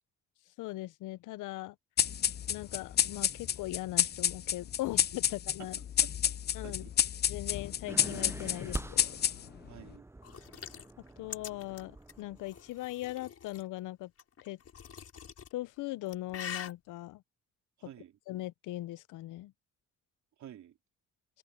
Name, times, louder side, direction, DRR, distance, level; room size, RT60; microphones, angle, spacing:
voice 1, 0.6-1.8 2.5-5.8 6.5-6.8 7.3-9.2 11.2-14.1 14.4-14.6 15.5-17.2 18.3-19.5, left 17 dB, 90° left, 0.7 m, -39 dB
sound 1, 2.0-9.7, left 9 dB, 35° left, 0.4 m, -30 dB
voice 2, 6.0-6.9 9.7-10.0 17.8-18.1 20.4-20.7, right 11 dB, 70° right, 3.2 m, -50 dB
sound 2, 7.9-12.7, right 2 dB, 10° right, 0.7 m, -45 dB
sound 3, 10.2-13.6 14.2-15.5 15.9-16.7, left 8 dB, 55° left, 5.8 m, -44 dB
cardioid pair, 90°, 30 cm